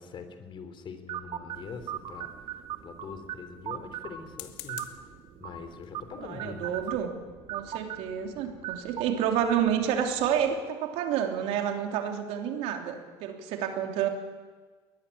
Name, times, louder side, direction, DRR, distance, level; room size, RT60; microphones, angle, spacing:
voice 1, 0.0-6.8, left 5 dB, 50° left, 9 dB, 3.7 m, -44 dB
sound 1, 1.1-10.6, right 10 dB, 55° right, 2.2 m, -40 dB
sound 2, 1.5-2.3 4.2-5.1 5.8-6.0 6.5-6.6 6.8-7.1, left 15 dB, 80° left, 1.8 m, -47 dB
voice 2, 6.2-7.1 7.5-14.1, right 9 dB, 75° right, 3 dB, 3.3 m, -29 dB
22.5 x 19.5 x 8.7 m, 1.4 s
supercardioid pair, 90°, 11 cm